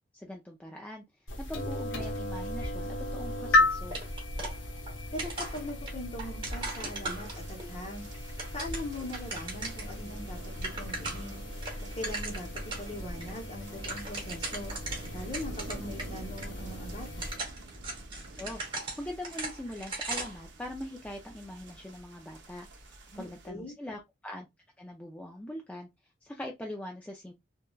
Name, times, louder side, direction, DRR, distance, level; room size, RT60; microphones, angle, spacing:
voice 1, 0.1-1.0 1.4-4.0 18.4-24.5 24.8-25.9 26.2-27.3, left 1 dB, 5° left, 0.3 m, -42 dB
sound 1, 1.3-17.4, left 2 dB, 85° left, 0.7 m, -35 dB
sound 2, 3.9-4.9 5.2-7.7 8.1-9.9 10.3-10.4 10.5-11.3 11.6-12.9 13.2-13.3 13.6-16.1 16.4-16.5 17.0-20.4, right 2 dB, 25° right, 1.0 m, -38 dB
voice 2, 5.1-8.0 8.5-11.4 11.9-14.7 15.1-17.3 23.1-23.7, left 1 dB, 35° left, 0.7 m, -41 dB
sound 3, 7.2-23.5, right 1 dB, 65° right, 0.7 m, -48 dB
3.1 x 2.2 x 2.2 m
head